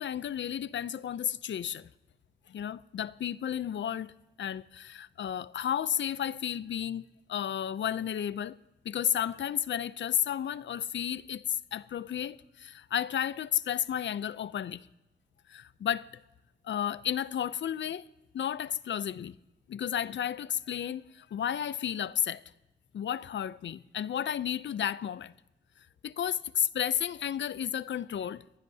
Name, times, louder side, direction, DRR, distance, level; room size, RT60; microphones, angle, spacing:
voice 1, 0.0-1.9 2.5-4.1 4.4-8.6 8.8-14.9 15.5-16.1 16.6-18.1 18.3-19.3 19.7-22.4 22.9-25.3 26.0-28.4, left 9 dB, 80° left, 0.5 m, -32 dB
23.0 x 15.5 x 2.8 m
wide cardioid pair, 175°, 19 cm